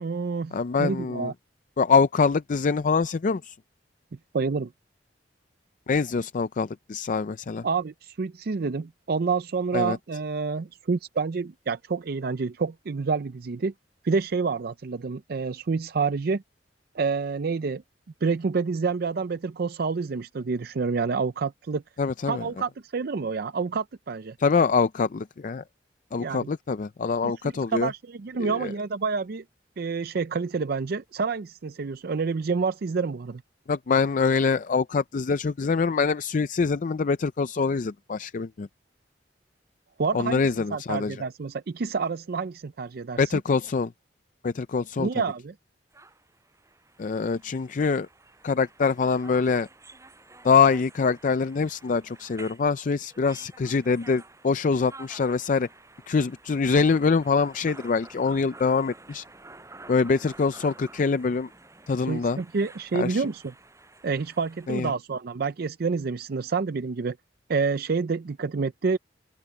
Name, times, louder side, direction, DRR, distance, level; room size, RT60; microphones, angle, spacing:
voice 1, 0.0-1.3 4.3-4.7 7.6-13.7 14.0-16.4 16.9-17.8 18.2-21.8 22.3-24.3 26.2-26.5 27.2-29.4 29.8-33.4 40.0-40.4 40.7-43.4 45.0-45.5 62.1-63.5 64.0-67.2 67.5-69.0, right 4 dB, 60° right, 0.5 m, -28 dB
voice 2, 0.5-1.3 1.8-3.5 5.9-7.6 9.7-10.0 22.0-22.4 24.4-25.6 26.1-27.9 28.4-28.7 33.7-38.7 40.1-41.2 43.2-43.9 44.4-45.1 47.0-48.1 48.4-49.7 50.4-55.7 56.1-59.2 59.9-61.5 61.9-62.4 62.9-63.3 64.7-64.9, left 5 dB, 45° left, 0.4 m, -24 dB
sound 1, 45.9-64.7, right 2 dB, 15° right, 6.3 m, -50 dB
open air
head